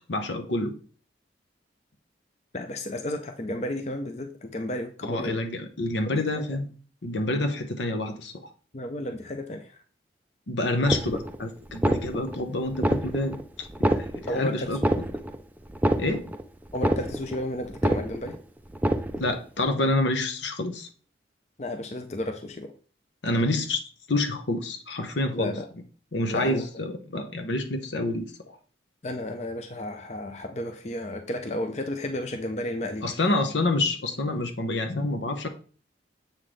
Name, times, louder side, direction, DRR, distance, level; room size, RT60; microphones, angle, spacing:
voice 1, 0.1-0.7 5.0-6.7 7.0-8.3 10.5-15.1 16.0-16.2 19.2-20.9 23.2-25.5 26.1-28.6 33.0-35.5, left 2 dB, 80° left, 5 dB, 1.0 m, -28 dB
voice 2, 2.5-5.4 6.0-6.4 8.7-9.8 14.3-14.8 16.7-18.4 21.6-22.7 25.3-25.7 26.3-26.6 29.0-33.1, left 1 dB, 35° left, 6 dB, 0.6 m, -32 dB
sound 1, 10.9-11.4 11.7-12.4 12.7-13.4 13.7-14.4 14.7-15.4 15.7-16.4 16.7-17.4 17.7-18.4 18.7-19.4, right 1 dB, 10° right, 0.4 m, -26 dB
7.5 x 5.7 x 3.3 m, 0.40 s
head